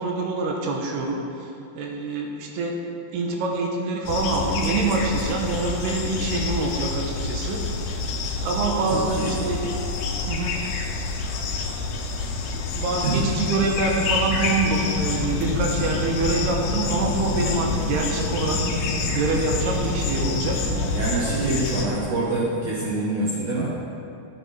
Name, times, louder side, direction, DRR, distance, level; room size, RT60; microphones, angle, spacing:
voice 1, 0.0-2.8 3.1-7.7 8.4-9.7 10.3-10.6 12.7-18.6 19.1-20.7 21.3-21.6, right 3 dB, 80° right, 1 dB, 3.0 m, -26 dB
sound 1, 4.1-21.9, left 3 dB, 80° left, 3.0 m, -27 dB
voice 2, 8.9-9.5 13.0-13.3 20.6-23.7, right 2 dB, 65° right, -7 dB, 2.2 m, -26 dB
12.5 x 8.4 x 4.2 m, 2.6 s
omnidirectional pair, 4.8 m